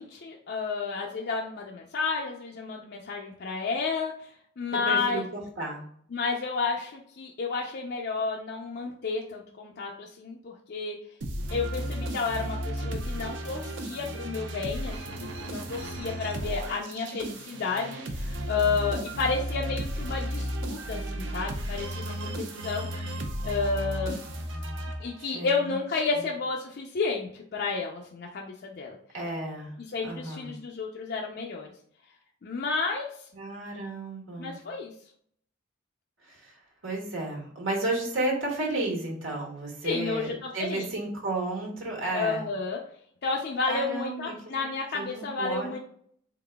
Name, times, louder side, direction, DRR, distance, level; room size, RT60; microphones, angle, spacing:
voice 1, 0.0-4.3 4.6-5.2 6.1-11.0 11.5-24.2 25.0-29.0 29.9-31.7 32.4-33.1 34.4-34.9 39.8-40.9 42.1-42.8 43.2-45.8, left 4 dB, 55° left, 0 dB, 0.5 m, -31 dB
voice 2, 4.8-5.8 25.2-25.8 29.1-29.7 30.0-30.5 33.3-34.6 36.2-36.5 36.8-42.5 43.7-44.6 44.9-45.7, right 2 dB, 80° right, -1 dB, 1.4 m, -32 dB
sound 1, 11.2-25.5, right 1 dB, 65° right, 0.7 m, -34 dB
3.9 x 3.7 x 2.2 m, 0.63 s
head